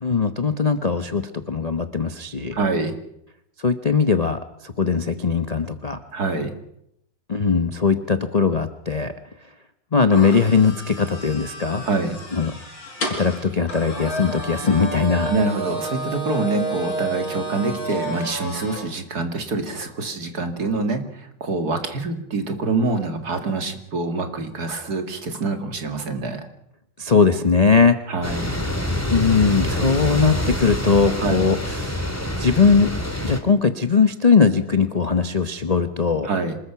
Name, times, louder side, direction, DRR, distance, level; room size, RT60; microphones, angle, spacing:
voice 1, 0.0-2.6 3.6-6.0 7.3-9.1 9.9-11.8 12.3-12.5 13.0-15.3 27.0-28.0 29.1-32.0 32.4-32.9 33.2-36.3, left 5 dB, 40° left, 9 dB, 0.5 m, -20 dB
voice 2, 2.5-2.9 6.1-6.5 11.8-12.2 15.3-26.5 28.1-28.6 31.2-31.4 36.2-36.6, right 3 dB, 50° right, 6 dB, 2.7 m, -25 dB
sound 1, 10.1-18.9, right 2 dB, 75° left, 6.2 m, -31 dB
sound 2, 28.2-33.4, equal, 10° left, 2.1 m, -26 dB
26.0 x 20.5 x 5.9 m, 0.77 s
omnidirectional pair, 2.2 m